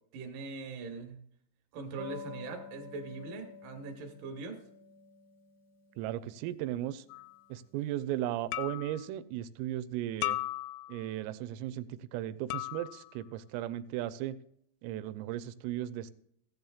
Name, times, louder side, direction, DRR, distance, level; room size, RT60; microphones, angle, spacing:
voice 1, 0.1-1.2 1.7-4.6, right 3 dB, 65° right, 4 dB, 2.8 m, -41 dB
sound 1, 1.9-8.1, left 4 dB, 35° right, 0.6 m, -51 dB
voice 2, 6.0-7.0 7.5-10.4 10.9-14.4 14.8-16.1, right 13 dB, 85° right, 14 dB, 3.1 m, -36 dB
sound 2, 7.1-7.4 8.5-9.1 10.2-11.1 12.5-13.1, left 18 dB, 85° left, 3.1 m, -36 dB
16.0 x 11.0 x 2.4 m, 0.72 s
omnidirectional pair, 5.9 m